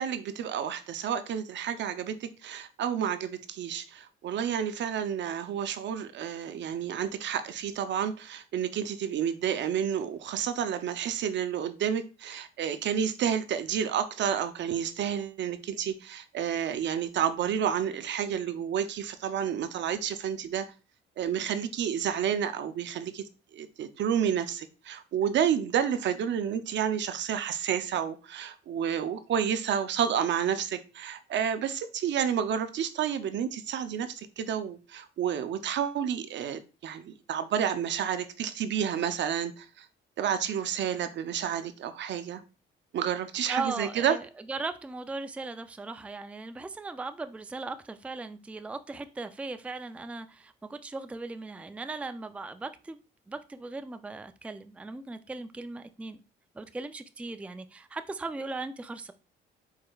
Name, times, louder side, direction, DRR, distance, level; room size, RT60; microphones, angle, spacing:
voice 1, 0.0-20.7 21.2-23.2 23.5-39.9 40.2-42.4 42.9-44.2, right 8 dB, 65° right, 0.6 m, -30 dB
voice 2, 43.5-53.0 53.3-56.2 56.5-59.1, right 3 dB, 5° right, 0.4 m, -38 dB
4.7 x 4.4 x 2.3 m
cardioid pair, 90°, 20 cm